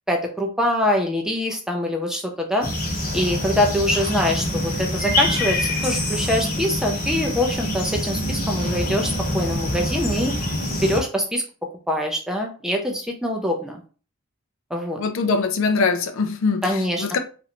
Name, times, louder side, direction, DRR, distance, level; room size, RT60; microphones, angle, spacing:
voice 1, 0.1-2.7 3.1-11.4 11.9-13.8 14.7-15.0 16.6-17.0, left 1 dB, ahead, 0.4 m, -24 dB
sound 1, 2.6-11.0, left 1 dB, 40° left, 1.0 m, -25 dB
voice 2, 15.0-16.6 17.0-17.2, left 4 dB, 60° left, 0.4 m, -22 dB
3.1 x 2.5 x 2.9 m
head